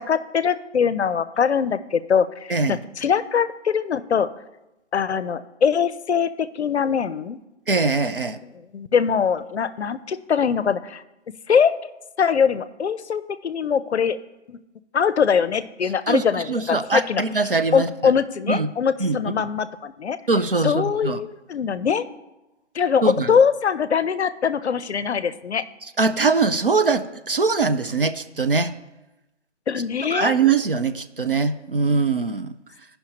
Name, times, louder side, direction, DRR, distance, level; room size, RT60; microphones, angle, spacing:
voice 1, 0.0-4.3 4.9-7.4 8.7-11.0 11.5-11.9 12.2-14.2 14.5-14.6 14.9-17.2 17.7-20.2 20.6-22.1 22.7-25.6 29.7-30.4, left 7 dB, 65° left, 14 dB, 0.5 m, -22 dB
voice 2, 7.7-8.4 16.1-17.9 18.5-18.7 19.0-19.3 20.3-21.2 23.0-23.3 26.0-28.7 30.1-32.5, right 4 dB, 50° right, 10 dB, 0.4 m, -22 dB
16.0 x 5.6 x 2.9 m, 0.97 s
hypercardioid pair, 175°, 36 cm